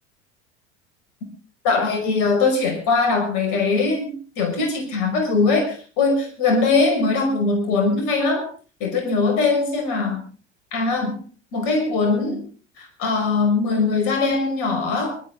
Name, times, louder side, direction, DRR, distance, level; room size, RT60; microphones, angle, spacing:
voice 1, 1.6-8.5 8.8-10.2 10.7-11.2 11.5-12.4 12.8-15.2, left 4 dB, 55° left, 4 dB, 5.8 m, -21 dB
24.5 x 12.5 x 3.8 m, 0.36 s
figure-of-eight pair, 75°, 36 cm